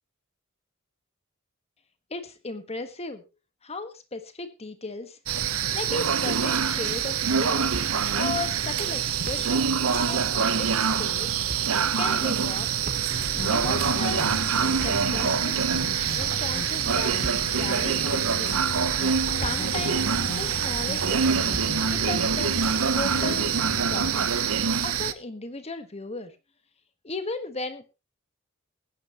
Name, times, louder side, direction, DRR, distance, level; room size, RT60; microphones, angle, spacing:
voice 1, 2.1-3.2 3.6-5.2 5.7-7.7 8.1-11.3 12.0-12.7 13.5-14.4 14.8-15.7 16.1-17.1 17.5-18.6 19.3-21.5 21.9-22.5 23.0-23.5 23.9-24.3 24.8-26.3 27.0-28.0, left 3 dB, 30° left, 9 dB, 1.4 m, -36 dB
sound 1, 5.3-25.1, right 7 dB, 90° right, 0.9 m, -25 dB
Thump thud, 7.7-8.2 8.5-8.6 9.1-9.8 10.1-10.3 11.2-11.9 12.8-13.5 14.6-15.6 17.0-17.7 18.4-18.5 19.1-19.9 20.1-20.3 21.5-21.9, right 1 dB, 40° right, 1.3 m, -39 dB
sound 2, 13.1-24.1, left 3 dB, 60° left, 0.9 m, -37 dB
20.0 x 10.0 x 3.0 m, 0.27 s
head